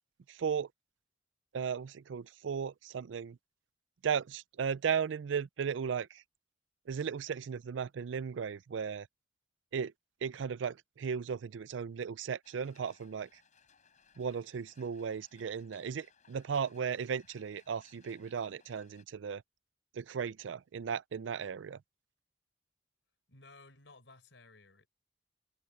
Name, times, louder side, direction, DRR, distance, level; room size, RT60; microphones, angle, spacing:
voice 1, 0.3-0.7 1.5-3.4 4.0-6.2 6.9-9.1 9.7-9.9 10.2-13.4 14.2-19.4 19.9-21.8, right 6 dB, 85° right, 0.4 m, -36 dB
sound 1, 12.4-19.0, left 6 dB, 45° left, 7.8 m, -65 dB
voice 2, 23.3-24.9, left 3 dB, 80° left, 4.5 m, -57 dB
head